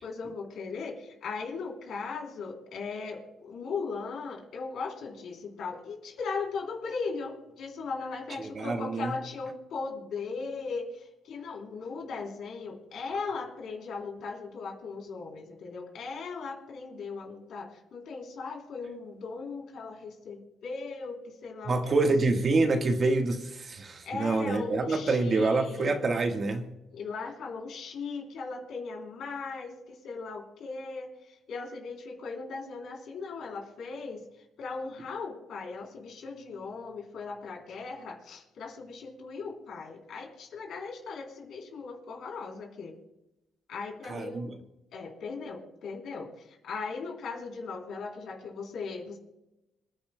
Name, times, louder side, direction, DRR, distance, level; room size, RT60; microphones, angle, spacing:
voice 1, 0.0-21.9 24.0-25.9 26.9-34.2 34.6-43.0 43.7-44.5 44.9-49.2, left 4 dB, 70° left, 1 dB, 3.4 m, -38 dB
voice 2, 8.4-9.2 21.6-26.7 44.1-44.5, right 3 dB, 45° right, 5 dB, 1.4 m, -27 dB
26.5 x 9.9 x 2.2 m, 0.92 s
cardioid pair, 90°, 0 cm